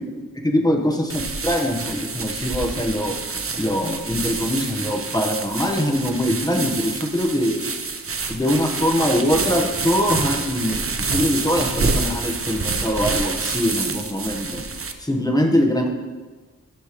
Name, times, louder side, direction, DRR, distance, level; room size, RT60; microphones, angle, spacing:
voice 1, 0.3-3.1 3.6-7.6 8.3-14.6 15.0-15.9, equal, 10° left, 2 dB, 1.1 m, -22 dB
sound 1, 1.1-14.9, right 4 dB, 40° right, 0.6 m, -27 dB
12.0 x 6.7 x 3.1 m, 1.3 s
wide cardioid pair, 60°, 35 cm